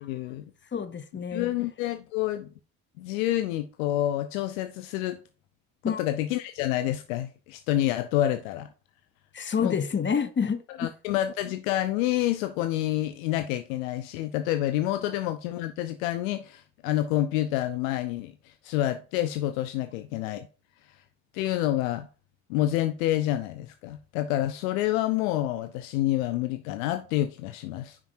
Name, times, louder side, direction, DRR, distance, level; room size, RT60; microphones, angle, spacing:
voice 1, 0.0-0.4 1.3-2.5 3.0-5.2 5.9-8.7 9.6-9.8 10.8-20.5 20.9-21.0 21.3-22.1 22.5-28.0, left 14 dB, 85° left, 0.5 m, -28 dB
voice 2, 0.7-1.5 5.8-6.0 9.3-10.9, left 6 dB, 30° left, 1.0 m, -28 dB
6.0 x 5.3 x 4.3 m
hypercardioid pair, 55°, 40 cm